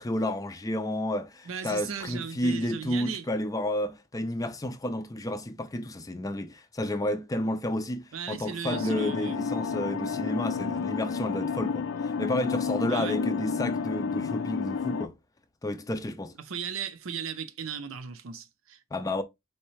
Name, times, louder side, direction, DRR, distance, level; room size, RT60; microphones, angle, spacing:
voice 1, 0.0-15.1 15.6-16.3 18.9-19.2, left 1 dB, 15° left, 0.4 m, -31 dB
voice 2, 1.5-3.3 8.1-9.5 12.9-13.2 16.4-18.8, right 7 dB, 80° right, 0.6 m, -37 dB
sound 1, 8.7-15.1, left 5 dB, 75° left, 0.5 m, -30 dB
4.4 x 3.2 x 3.1 m
head